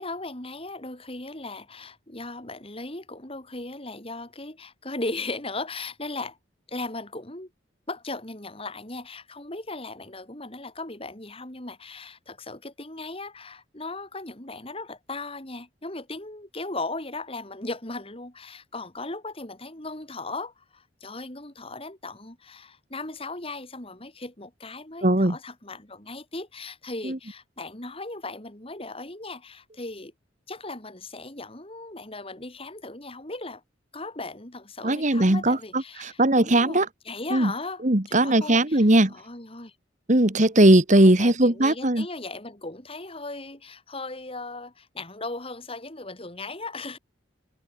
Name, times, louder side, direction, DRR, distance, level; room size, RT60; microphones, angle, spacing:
voice 1, 0.0-6.4 6.7-7.5 7.9-30.1 30.5-33.6 33.9-39.7 41.0-47.0, left 2 dB, 30° left, 3.9 m, -37 dB
voice 2, 25.0-25.4 27.0-27.2 34.8-36.9 37.3-37.5 37.8-39.1 40.1-42.1, right 1 dB, 40° right, 2.0 m, -19 dB
head